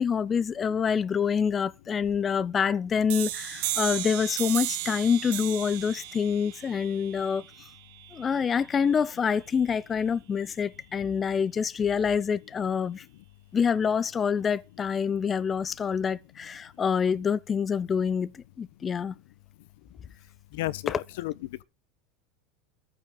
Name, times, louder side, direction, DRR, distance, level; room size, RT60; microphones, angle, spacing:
voice 1, 0.0-7.4 8.1-13.0 13.5-19.2, left 6 dB, 20° left, 0.6 m, -26 dB
sound 1, 3.1-8.5, right 16 dB, 65° right, 1.7 m, -35 dB
voice 2, 20.5-21.6, left 17 dB, 75° left, 0.9 m, -33 dB
14.0 x 6.0 x 7.6 m
supercardioid pair, 145°, 0 cm